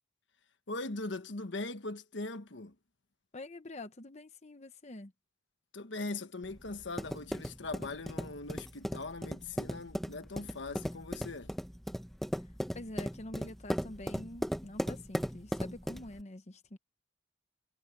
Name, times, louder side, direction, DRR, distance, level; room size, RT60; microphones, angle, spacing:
voice 1, 0.7-2.7 5.7-11.5, left 3 dB, 75° left, 1.3 m, -40 dB
voice 2, 3.3-5.1 12.7-16.8, left 1 dB, 35° left, 1.0 m, -46 dB
sound 1, 6.4-16.2, equal, ahead, 1.0 m, -37 dB
head